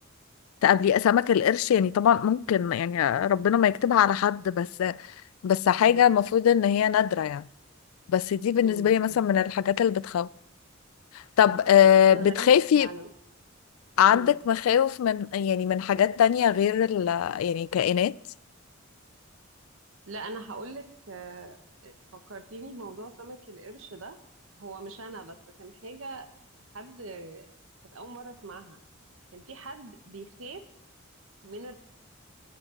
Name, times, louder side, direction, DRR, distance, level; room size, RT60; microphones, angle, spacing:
voice 1, 0.6-5.0 5.4-7.5 8.1-10.3 11.4-12.9 14.0-18.2, left 9 dB, 90° left, 0.3 m, -22 dB
voice 2, 5.7-6.1 8.6-9.2 12.1-13.1 14.1-14.5 20.1-24.2 24.6-26.3 26.7-27.5 27.9-28.8 29.3-30.6 31.4-31.8, right 2 dB, 75° right, 1.2 m, -42 dB
9.4 x 8.1 x 7.1 m
head